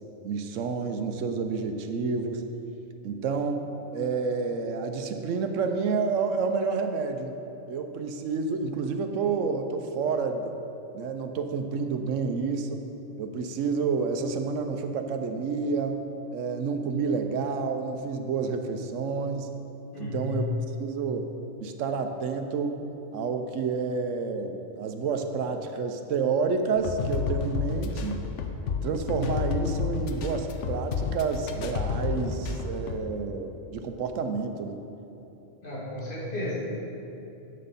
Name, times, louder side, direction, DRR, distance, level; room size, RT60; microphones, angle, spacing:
voice 1, 0.2-2.5 3.0-3.7 3.9-7.4 7.7-10.5 10.9-12.8 13.2-16.0 16.3-19.5 20.0-20.5 20.8-21.3 21.6-22.8 23.1-28.2 28.8-34.8, right 5 dB, 85° right, 7 dB, 1.0 m, -29 dB
voice 2, 19.9-20.4 35.6-36.5, left 1 dB, 45° left, -7 dB, 2.2 m, -33 dB
sound 1, 26.8-33.0, left 5 dB, 75° left, 0.9 m, -30 dB
10.0 x 6.5 x 4.1 m, 2.9 s
omnidirectional pair, 1.3 m